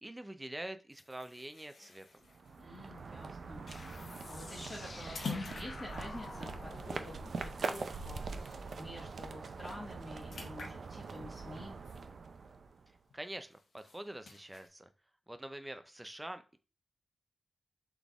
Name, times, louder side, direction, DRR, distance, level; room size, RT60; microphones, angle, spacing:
voice 1, 0.0-2.0 13.1-14.9 15.3-16.6, right 1 dB, 10° right, 8 dB, 0.5 m, -45 dB
sound 1, 0.9-8.9 9.3-9.4 9.7-12.7 13.1-14.7, left 4 dB, 80° left, 0.9 m, -49 dB
sound 2, 2.2-13.0, right 4 dB, 65° right, 0.4 m, -43 dB
voice 2, 2.6-3.7 3.9-11.8, left 1 dB, 25° left, -2 dB, 1.2 m, -49 dB
sound 3, 3.7-8.9, left 3 dB, 45° left, 0.4 m, -51 dB
4.0 x 3.5 x 3.5 m, 0.34 s
wide cardioid pair, 145°, 0 cm